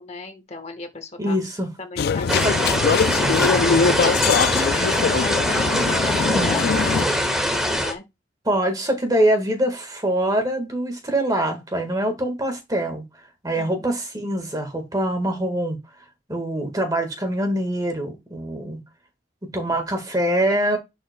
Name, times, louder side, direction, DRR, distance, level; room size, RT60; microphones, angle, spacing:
voice 1, 0.0-1.4 1.8-8.1 13.6-13.9, left 2 dB, 35° left, 1.3 m, -36 dB
voice 2, 1.2-1.7 2.4-2.5 3.6-3.8 6.3-6.6 8.4-13.0 13.4-15.8 16.3-18.8 19.4-20.8, right 1 dB, 20° right, 1.5 m, -24 dB
sound 1, 2.0-7.0, left 6 dB, 55° left, 0.4 m, -22 dB
sound 2, 2.3-7.9, equal, 5° right, 1.4 m, -22 dB
11.0 x 5.4 x 2.2 m
head